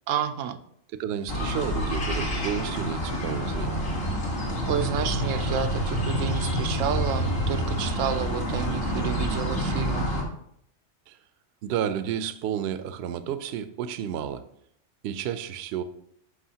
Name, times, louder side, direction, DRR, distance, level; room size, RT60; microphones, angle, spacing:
voice 1, 0.1-0.6 4.7-10.2, right 8 dB, 90° right, 9 dB, 1.0 m, -30 dB
voice 2, 1.0-3.8 11.1-11.2 11.6-14.5 15.0-15.8, right 9 dB, 65° right, 12 dB, 0.8 m, -31 dB
sound 1, 1.3-10.2, equal, 55° left, 1.6 m, -28 dB
11.5 x 4.9 x 2.8 m, 0.72 s
omnidirectional pair, 1.3 m